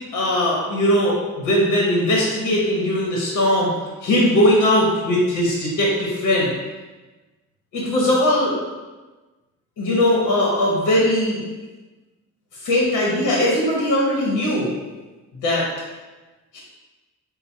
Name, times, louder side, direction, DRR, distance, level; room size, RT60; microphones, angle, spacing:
voice 1, 0.1-3.7 4.0-6.5 7.7-8.6 9.8-11.4 12.6-14.8 15.4-15.7 16.5-16.6, left 1 dB, 75° left, -3 dB, 1.0 m, -19 dB
4.0 x 2.1 x 4.3 m, 1.2 s
cardioid pair, 90°, 30 cm